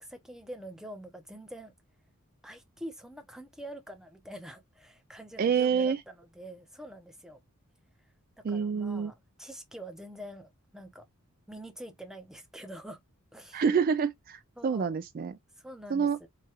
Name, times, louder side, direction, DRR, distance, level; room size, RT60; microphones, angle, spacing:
voice 1, 0.0-1.7 2.4-7.4 8.4-11.0 11.5-13.0 13.3-13.6 14.6-15.0 15.6-16.3, right 1 dB, ahead, 0.7 m, -45 dB
voice 2, 5.4-6.0 8.4-9.1 13.5-15.4 15.9-16.2, right 6 dB, 40° right, 0.3 m, -27 dB
4.8 x 2.4 x 2.8 m
head